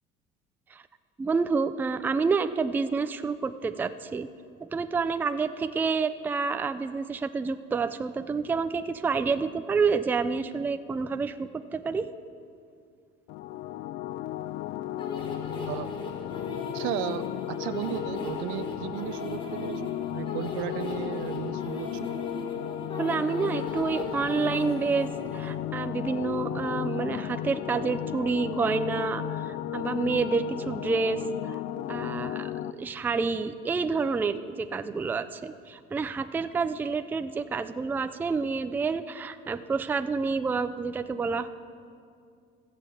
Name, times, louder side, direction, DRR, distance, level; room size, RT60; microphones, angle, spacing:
voice 1, 1.2-4.3 4.6-12.1 23.0-31.6 31.9-32.5 32.8-41.5, right 4 dB, 10° right, 10 dB, 0.3 m, -28 dB
sound 1, 13.3-32.7, left 12 dB, 65° left, 0.4 m, -34 dB
sound 2, 15.0-25.5, left 2 dB, 25° left, 1.6 m, -39 dB
voice 2, 16.7-22.1, right 12 dB, 75° right, 14 dB, 0.5 m, -35 dB
14.5 x 5.9 x 8.2 m, 2.3 s
cardioid pair, 135°, 20 cm